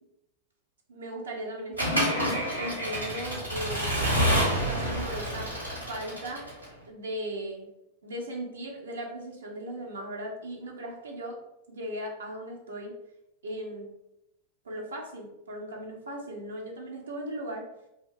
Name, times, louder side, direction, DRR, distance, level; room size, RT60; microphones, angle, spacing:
voice 1, 0.9-5.5 5.9-6.5 6.9-7.7 8.0-11.4 11.7-13.0 13.4-13.9 14.6-17.7, right 1 dB, 70° right, 0 dB, 0.5 m, -38 dB
Accelerating revving vroom / Mechanisms, 1.8-6.7, equal, 85° right, 1.2 m, -28 dB
2.5 x 2.2 x 3.4 m, 0.88 s
figure-of-eight pair, 90°, 0 cm